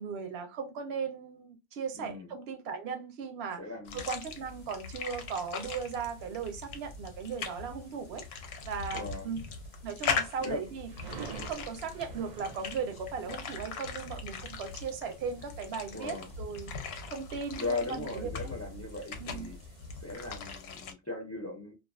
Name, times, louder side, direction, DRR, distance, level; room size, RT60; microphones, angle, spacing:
voice 1, 0.0-3.6 3.9-8.2 8.6-9.4 9.8-10.9 11.3-16.7 17.1-18.3 19.2-19.5, right 6 dB, 85° right, 0.8 m, -37 dB
voice 2, 1.9-2.3 3.6-4.0 8.9-9.3 10.4-10.6 15.9-16.3 17.5-19.6 20.0-21.7, left 3 dB, 20° left, 0.5 m, -38 dB
sound 1, 3.8-20.9, left 5 dB, 90° left, 0.8 m, -40 dB
sound 2, 4.3-20.4, right 5 dB, 55° right, 0.6 m, -52 dB
2.3 x 2.3 x 2.3 m
omnidirectional pair, 1.0 m